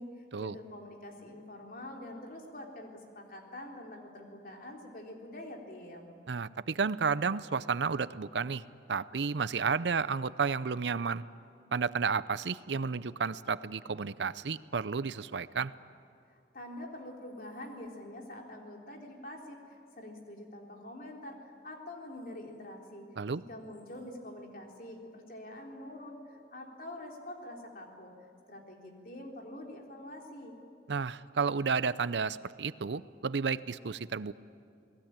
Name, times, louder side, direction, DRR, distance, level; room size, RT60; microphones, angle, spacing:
voice 1, 0.0-6.1 16.3-23.1 23.5-28.1 28.5-30.6, left 1 dB, 50° left, 1 dB, 3.6 m, -46 dB
voice 2, 6.3-8.6 8.9-11.2 11.7-15.7 23.2-23.4 30.9-34.3, right 5 dB, 80° right, 16 dB, 0.6 m, -32 dB
29.0 x 19.5 x 8.9 m, 2.4 s
head